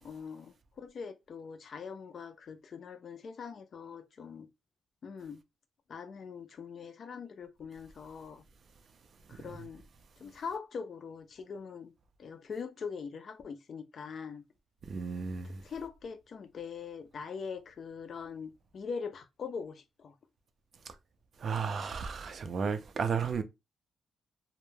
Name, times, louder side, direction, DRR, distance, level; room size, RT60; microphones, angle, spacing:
voice 1, 0.0-4.5 5.0-5.4 5.9-8.4 9.3-9.8 10.2-11.9 12.2-14.4 15.4-20.1, left 5 dB, 45° left, 0.3 m, -42 dB
voice 2, 14.9-15.6 21.4-23.4, right 6 dB, 45° right, 0.3 m, -33 dB
2.1 x 2.0 x 3.1 m
cardioid pair, 150°, 0 cm